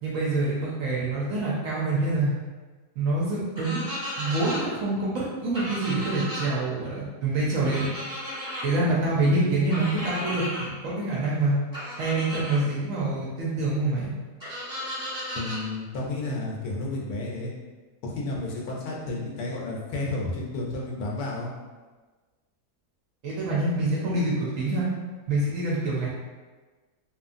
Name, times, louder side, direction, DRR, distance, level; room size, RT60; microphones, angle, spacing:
voice 1, 0.0-2.3 3.0-3.8 4.2-7.9 8.6-11.6 12.0-14.2 23.2-24.9 25.3-26.1, right 2 dB, 70° right, -6 dB, 0.9 m, -26 dB
sound 1, 3.6-4.6 5.5-6.5 7.6-8.6 9.7-10.7 11.7-12.6 14.4-15.6, equal, 15° right, 1.2 m, -34 dB
voice 2, 15.4-17.5 18.0-21.5, left 2 dB, 75° left, -3 dB, 1.0 m, -31 dB
2.9 x 2.4 x 2.5 m, 1.3 s
omnidirectional pair, 1.7 m